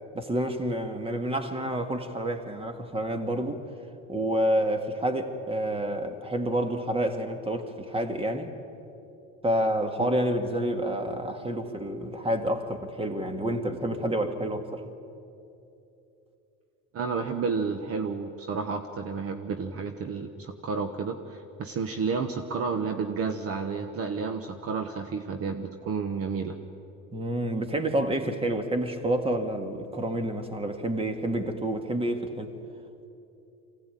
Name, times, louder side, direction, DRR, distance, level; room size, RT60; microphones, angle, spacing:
voice 1, 0.1-3.6 4.1-8.5 9.4-14.9 27.1-32.5, right 1 dB, 15° right, 2.0 m, -29 dB
voice 2, 16.9-26.6, right 5 dB, 40° right, 1.3 m, -31 dB
23.5 x 17.0 x 9.2 m
supercardioid pair, 100°, 35 cm